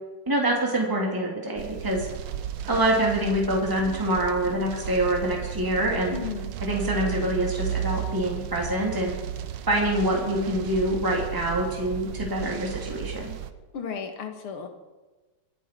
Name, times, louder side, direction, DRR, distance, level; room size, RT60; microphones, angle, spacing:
voice 1, 0.3-2.1 2.7-6.2 6.6-9.1 9.7-13.4, right 1 dB, 10° right, -1 dB, 2.6 m, -25 dB
sound 1, 1.6-13.5, right 10 dB, 75° right, 1.6 m, -34 dB
voice 2, 6.1-6.5 13.7-14.7, left 6 dB, 90° left, 5 dB, 2.6 m, -34 dB
25.5 x 11.0 x 4.5 m, 1.2 s
omnidirectional pair, 2.3 m